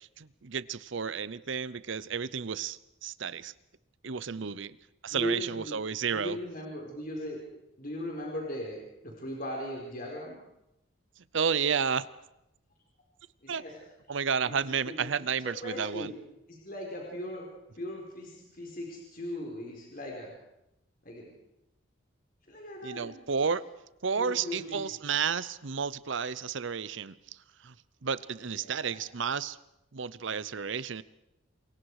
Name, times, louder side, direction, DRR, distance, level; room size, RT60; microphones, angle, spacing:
voice 1, 0.0-3.5 4.0-4.8 5.0-6.4 11.2-12.1 13.5-13.6 14.1-16.1 22.8-23.6 24.0-27.7 28.0-29.6 29.9-31.0, right 6 dB, 70° right, 18 dB, 0.7 m, -32 dB
voice 2, 5.1-5.8 6.1-7.4 7.8-10.4 13.4-13.7 14.4-14.6 14.9-16.2 16.5-17.4 17.8-20.3 21.0-21.3 22.5-23.5 24.1-24.8 28.5-29.0, left 1 dB, 45° left, -1 dB, 4.4 m, -39 dB
27.5 x 23.0 x 4.9 m, 0.88 s
head